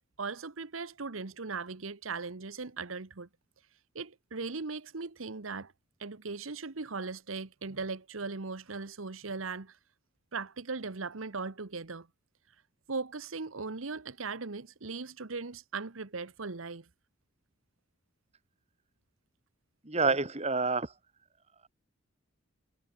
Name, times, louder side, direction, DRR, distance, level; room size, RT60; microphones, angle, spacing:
voice 1, 0.0-3.3 3.9-5.7 6.0-9.8 10.3-12.1 12.9-16.9, right 4 dB, 90° right, 1.2 m, -38 dB
voice 2, 19.8-20.9, right 3 dB, 35° right, 2.9 m, -28 dB
head